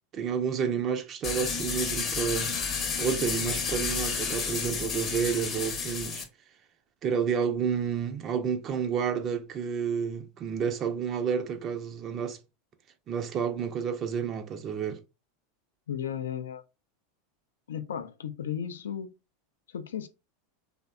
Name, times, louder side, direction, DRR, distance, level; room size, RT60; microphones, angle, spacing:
voice 1, 0.1-2.5 3.0-6.2 7.0-12.4 13.1-15.0, right 7 dB, 40° right, 0.4 m, -30 dB
sound 1, 1.2-6.2, left 5 dB, 35° left, 0.6 m, -31 dB
voice 2, 15.9-16.6 17.7-19.1 19.7-20.1, left 9 dB, 90° left, 0.3 m, -34 dB
2.7 x 2.1 x 2.3 m
hypercardioid pair, 105°, 0 cm